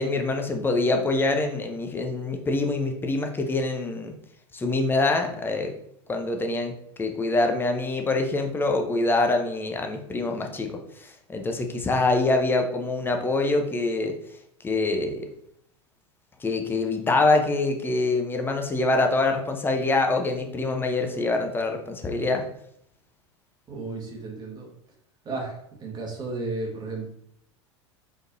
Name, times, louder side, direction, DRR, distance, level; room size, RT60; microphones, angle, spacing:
voice 1, 0.0-4.1 4.5-5.7 6.1-6.7 7.0-14.1 14.6-15.3 16.4-22.5, left 2 dB, 15° left, 4 dB, 0.8 m, -25 dB
voice 2, 23.7-24.7 25.2-27.1, right 3 dB, 25° right, 0 dB, 1.5 m, -33 dB
4.8 x 3.9 x 2.7 m, 0.70 s
figure-of-eight pair, 80°, 15 cm